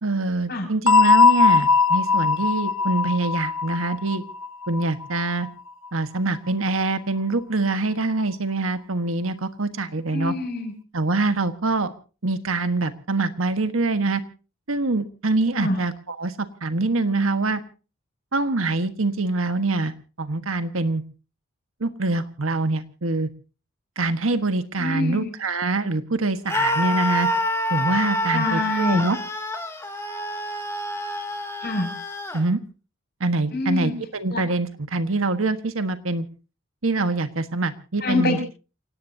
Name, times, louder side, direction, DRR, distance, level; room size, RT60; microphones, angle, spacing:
voice 1, 0.0-4.2 4.7-5.5 5.9-10.3 10.9-11.9 12.2-14.2 14.7-17.6 18.3-21.0 21.8-23.3 24.0-27.3 27.7-29.2 32.3-32.6 33.2-36.3 36.8-38.4, right 3 dB, 80° right, 10 dB, 1.4 m, -24 dB
sound 1, 0.9-5.5, left 4 dB, 85° left, 1.1 m, -19 dB
voice 2, 10.1-10.7 15.5-15.8 24.8-25.3 28.3-29.0 31.6-31.9 33.5-33.9 34.3-34.4 38.0-38.4, left 2 dB, 50° left, 4 dB, 6.7 m, -25 dB
Screaming, 26.5-32.4, left 1 dB, 15° left, 2.5 m, -27 dB
29.0 x 17.5 x 2.8 m, 0.36 s
head